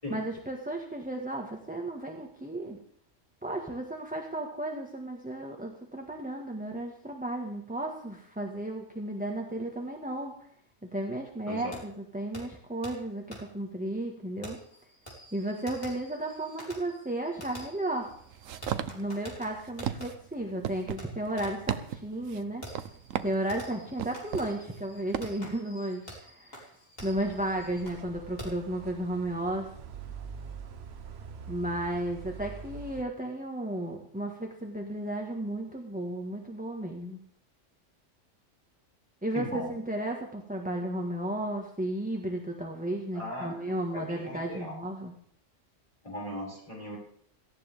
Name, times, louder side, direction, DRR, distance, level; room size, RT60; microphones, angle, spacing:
voice 1, 0.1-2.8 3.4-10.3 10.8-14.6 15.3-18.1 18.9-22.6 23.2-26.7 27.0-29.7 31.5-37.2 39.2-45.1, right 1 dB, 5° right, 1 dB, 1.5 m, -34 dB
Fireworks, 11.7-11.8 12.3-12.4 12.8-12.9 13.3-13.4 14.4-20.1 21.0-21.1 21.4-21.7 22.6-28.0 28.4-28.7, equal, 45° left, 4.1 m, -47 dB
sound 1, 18.0-25.3, right 9 dB, 90° right, 1.1 m, -37 dB
sound 2, 27.0-33.0, right 7 dB, 60° right, 1.1 m, -44 dB
voice 2, 39.3-39.7 43.1-44.8 46.0-47.0, left 1 dB, 25° left, -4 dB, 6.3 m, -38 dB
17.5 x 15.0 x 3.6 m, 0.64 s
omnidirectional pair, 1.3 m